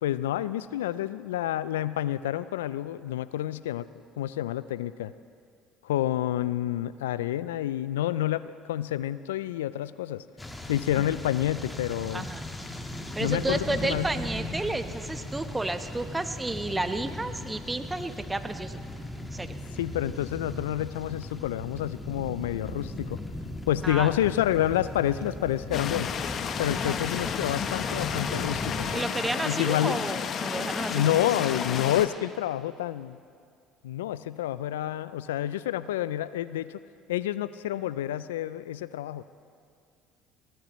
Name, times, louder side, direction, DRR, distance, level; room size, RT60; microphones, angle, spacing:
voice 1, 0.0-3.9 4.2-5.1 5.8-10.2 10.7-12.3 13.2-14.1 19.8-23.2 23.7-26.1 26.6-28.9 29.4-30.0 30.9-33.2 33.8-36.8 37.1-39.2, left 12 dB, 85° left, 16 dB, 0.4 m, -28 dB
sound 1, 10.4-29.0, left 1 dB, 15° left, 1.6 m, -38 dB
voice 2, 13.2-18.8 19.3-19.5 23.8-24.1 26.8-27.0 28.9-31.0, right 2 dB, 15° right, 9 dB, 1.0 m, -31 dB
sound 2, 25.7-32.1, left 7 dB, 50° left, 0.9 m, -31 dB
sound 3, 26.7-31.7, right 4 dB, 45° right, 4.0 m, -50 dB
23.0 x 17.0 x 3.1 m, 2.2 s
hypercardioid pair, 65°, 0 cm